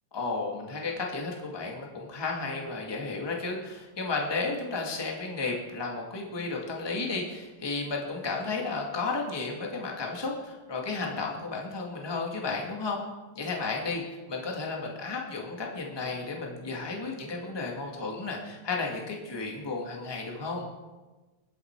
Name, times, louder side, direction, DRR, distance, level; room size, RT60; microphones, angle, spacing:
voice 1, 0.1-13.0 13.3-20.6, left 3 dB, 10° left, 0 dB, 1.5 m, -33 dB
21.5 x 8.1 x 4.6 m, 1.2 s
omnidirectional pair, 3.4 m